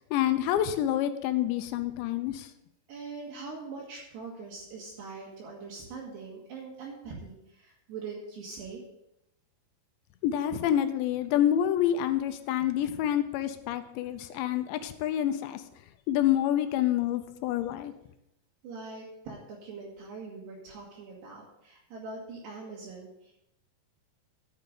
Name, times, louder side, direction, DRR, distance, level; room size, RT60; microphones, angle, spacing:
voice 1, 0.1-2.5 10.2-15.6 16.1-17.9, left 11 dB, 80° left, 9 dB, 2.8 m, -27 dB
voice 2, 2.9-8.8 18.6-23.3, right 4 dB, 65° right, -5 dB, 3.6 m, -42 dB
12.5 x 6.7 x 5.2 m, 0.82 s
omnidirectional pair, 5.4 m